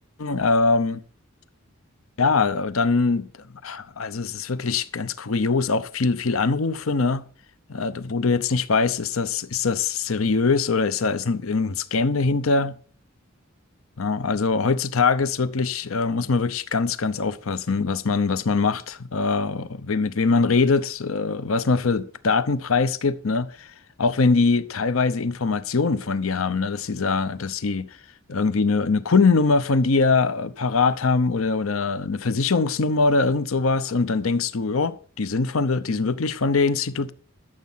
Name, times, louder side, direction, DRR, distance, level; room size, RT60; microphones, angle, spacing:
voice 1, 0.2-1.0 2.2-3.3 3.6-7.2 7.7-12.8 14.0-27.9 28.3-37.1, left 4 dB, 70° left, 0.8 m, -22 dB
13.5 x 7.4 x 5.6 m
head